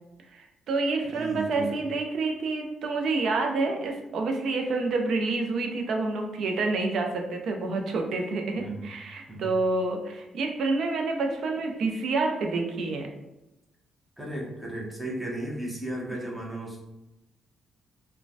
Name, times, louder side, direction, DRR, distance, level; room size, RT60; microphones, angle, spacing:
voice 1, 0.3-13.1, right 3 dB, 70° right, 3 dB, 0.5 m, -28 dB
voice 2, 1.0-1.8 8.6-8.9 9.3-9.5 14.2-16.8, right 1 dB, 5° right, -4 dB, 0.9 m, -35 dB
3.1 x 2.2 x 2.6 m, 0.95 s
cardioid pair, 90°, 0 cm